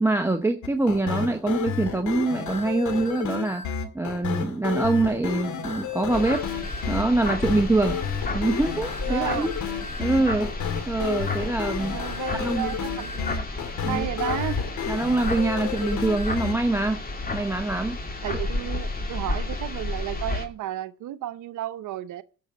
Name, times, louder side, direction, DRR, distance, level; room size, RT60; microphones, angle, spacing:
voice 1, 0.0-3.7 3.9-6.5 6.9-8.0 8.3-9.6 10.0-10.5 10.9-12.0 12.4-12.7 13.8-14.1 14.9-17.0 17.3-18.0, right 2 dB, 10° right, 0.8 m, -24 dB
sound 1, 0.6-16.5, left 7 dB, 70° left, 2.2 m, -31 dB
sound 2, 6.1-20.5, left 2 dB, 30° left, 2.3 m, -32 dB
voice 2, 9.1-9.5 11.9-13.5 13.8-14.6 18.2-22.2, right 13 dB, 80° right, 0.8 m, -33 dB
11.5 x 6.6 x 8.2 m
cardioid pair, 90°, 30 cm